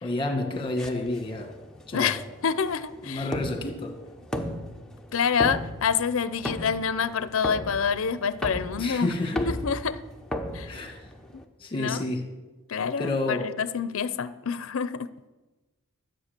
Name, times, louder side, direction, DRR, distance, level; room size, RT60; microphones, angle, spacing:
voice 1, 0.0-1.5 1.9-2.2 3.0-4.0 8.8-9.5 10.6-11.0 11.6-12.3 13.0-13.5, left 2 dB, 25° left, 5 dB, 1.7 m, -29 dB
sound 1, 0.8-11.4, left 1 dB, 5° left, 0.8 m, -36 dB
voice 2, 1.9-3.3 5.1-9.2 9.4-10.0 10.5-10.7 11.7-12.0 12.7-15.1, left 6 dB, 65° left, 15 dB, 0.5 m, -27 dB
13.0 x 8.2 x 6.7 m, 1.2 s
head